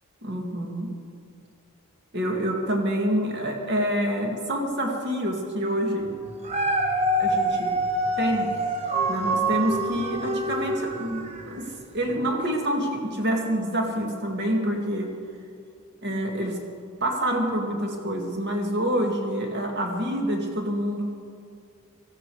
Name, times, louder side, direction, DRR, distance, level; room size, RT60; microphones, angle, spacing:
voice 1, 0.2-0.9 2.1-6.2 7.2-7.8 8.2-8.6 9.1-15.1 16.0-16.6 17.0-21.0, equal, 50° right, 1 dB, 2.1 m, -27 dB
Dog, 6.3-11.6 12.1-12.2, right 1 dB, 30° right, 1.0 m, -26 dB
18.0 x 15.0 x 4.9 m, 2.3 s
head